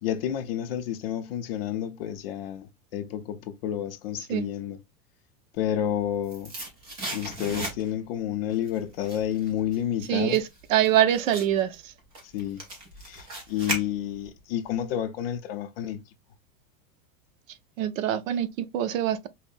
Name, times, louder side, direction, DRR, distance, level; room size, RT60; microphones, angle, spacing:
voice 1, 0.0-2.7 2.9-4.8 5.6-6.5 7.1-10.4 12.3-12.6 13.0-16.0, left 10 dB, 45° left, 0.5 m, -30 dB
sound 1, 6.0-8.1 8.5-14.4 14.7-14.8, right 1 dB, 15° right, 0.3 m, -37 dB
voice 2, 10.1-11.9 17.8-19.3, right 11 dB, 65° right, 0.7 m, -24 dB
5.4 x 2.1 x 2.4 m
supercardioid pair, 175°, 42 cm